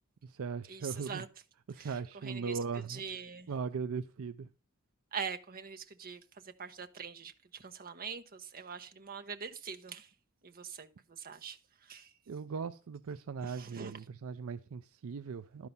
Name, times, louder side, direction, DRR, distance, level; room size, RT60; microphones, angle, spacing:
voice 1, 0.2-1.3 1.7-3.0 3.5-4.5 12.3-15.7, right 5 dB, 65° right, 0.4 m, -39 dB
voice 2, 2.9-3.5 5.1-6.2 6.6-10.1 10.4-10.9 11.2-11.6 11.9-12.1 13.6-13.9, right 6 dB, 40° right, 0.8 m, -43 dB
12.0 x 4.7 x 5.4 m
head